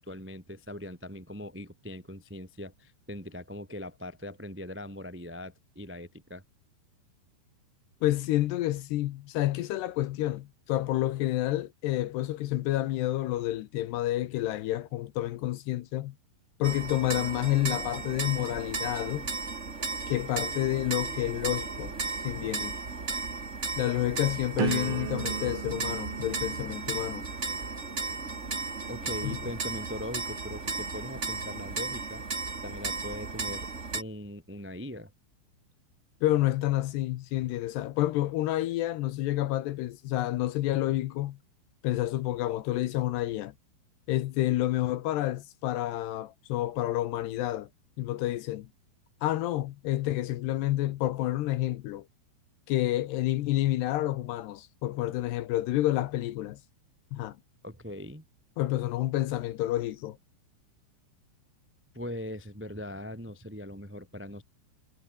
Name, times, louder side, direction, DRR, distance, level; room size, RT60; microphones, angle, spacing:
voice 1, 0.0-6.4 28.9-32.2 32.6-35.1 57.6-58.2 61.9-64.4, left 1 dB, 10° right, 0.6 m, -40 dB
voice 2, 8.0-16.1 16.6-19.3 20.1-21.9 22.2-22.8 23.8-27.3 29.2-29.4 36.2-41.4 41.8-43.5 44.1-47.7 48.0-48.7 49.2-52.1 52.7-56.6 57.1-57.4 58.6-60.2, left 15 dB, 70° left, 2.8 m, -29 dB
sound 1, 16.6-34.0, right 4 dB, 65° right, 0.7 m, -35 dB
sound 2, 24.6-30.4 31.0-31.4, right 9 dB, 85° right, 5.7 m, -39 dB
omnidirectional pair, 5.5 m